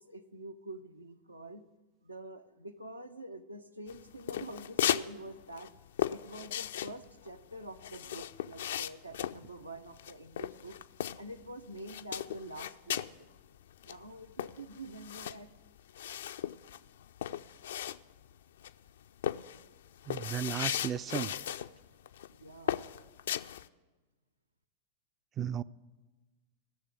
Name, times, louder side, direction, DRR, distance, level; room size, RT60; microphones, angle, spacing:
voice 1, 0.0-1.6 2.0-5.7 6.1-10.8 11.2-13.3 13.8-15.5 22.3-22.8, right 1 dB, 80° right, 8 dB, 0.6 m, -46 dB
sound 1, 3.9-5.1 5.4-11.5 11.8-13.2 13.5-13.6 13.8-18.3 18.6-18.9 19.2-21.7 22.1-22.3 22.7-23.7, left 11 dB, 60° left, 0.3 m, -36 dB
voice 2, 20.1-21.3 25.4-25.6, right 9 dB, 25° right, 17 dB, 0.3 m, -34 dB
16.5 x 6.8 x 7.7 m, 1.2 s
figure-of-eight pair, 90°, 0 cm